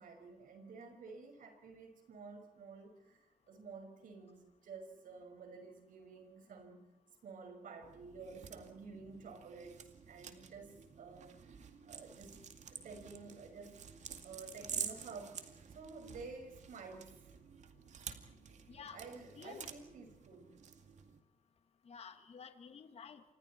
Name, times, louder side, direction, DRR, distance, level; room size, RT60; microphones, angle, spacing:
voice 1, 0.0-6.9 7.2-12.4 12.7-13.9 14.2-17.3 18.5-18.6 18.9-20.6, right 4 dB, 70° right, 5 dB, 5.9 m, -52 dB
sound 1, 7.8-21.2, right 7 dB, 55° right, 2.2 m, -49 dB
voice 2, 18.7-19.0 19.4-19.7 21.9-23.2, left 6 dB, 45° left, 8 dB, 2.1 m, -51 dB
29.5 x 26.5 x 4.5 m, 1.0 s
wide cardioid pair, 160°, 14 cm